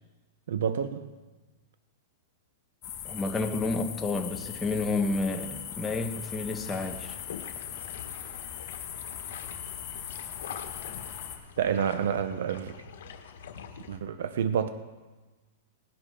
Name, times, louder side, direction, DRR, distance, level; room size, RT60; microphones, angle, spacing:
voice 1, 0.5-1.1 11.6-12.8 13.9-14.7, right 8 dB, 75° right, 10 dB, 0.8 m, -28 dB
sound 1, 2.8-11.4, left 9 dB, 35° left, 1.8 m, -40 dB
voice 2, 3.0-7.2, left 3 dB, 10° left, 3 dB, 1.1 m, -30 dB
sound 2, 6.6-14.0, left 7 dB, 75° left, 1.5 m, -45 dB
18.5 x 11.5 x 3.8 m, 1.2 s
supercardioid pair, 150°, 0 cm